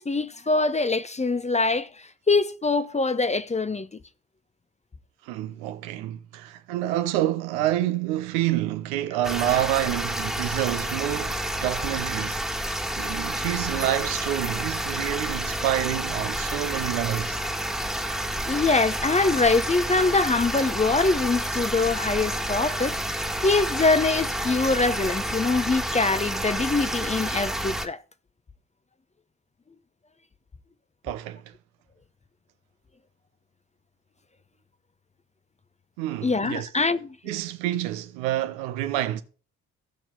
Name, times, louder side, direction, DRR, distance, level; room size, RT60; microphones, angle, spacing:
voice 1, 0.0-1.9 2.3-3.9 18.4-28.0 36.2-37.2, left 3 dB, 15° left, 0.7 m, -23 dB
voice 2, 5.2-12.5 13.0-17.4 31.0-31.5 36.0-36.7 37.2-39.2, right 13 dB, 70° right, 1.0 m, -28 dB
sound 1, 9.2-27.9, right 1 dB, ahead, 1.7 m, -29 dB
15.5 x 5.8 x 4.0 m
figure-of-eight pair, 45°, 41 cm